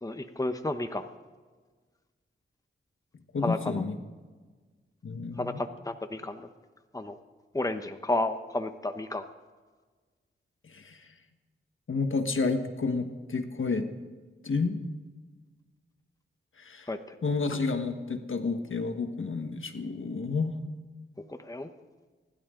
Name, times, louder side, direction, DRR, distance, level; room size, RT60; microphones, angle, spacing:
voice 1, 0.0-1.1 3.4-3.7 5.4-6.5 6.9-7.2 7.5-9.3 16.9-17.2 21.3-21.7, left 2 dB, 15° left, 7 dB, 1.1 m, -32 dB
voice 2, 3.3-4.0 5.0-5.6 10.6-11.1 11.9-13.9 14.4-14.8 16.6-16.9 17.2-20.6, left 4 dB, 70° left, 6 dB, 1.5 m, -30 dB
28.5 x 12.0 x 3.9 m, 1.4 s
cardioid pair, 50°, 21 cm